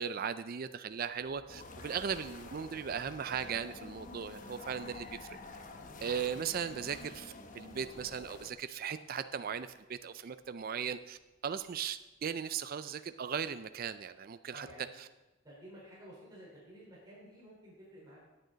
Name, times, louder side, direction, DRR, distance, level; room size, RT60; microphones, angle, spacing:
voice 1, 0.0-5.4 6.0-14.7, right 7 dB, 45° right, 11 dB, 0.4 m, -38 dB
sound 1, 1.5-8.5, left 3 dB, 40° left, 1.0 m, -49 dB
voice 2, 5.7-6.1 14.5-14.9 15.4-18.3, equal, 20° right, -7 dB, 4.1 m, -53 dB
Thunderstorm, 8.5-12.4, equal, 10° left, 4.2 m, -66 dB
16.0 x 9.1 x 4.0 m, 1.1 s
head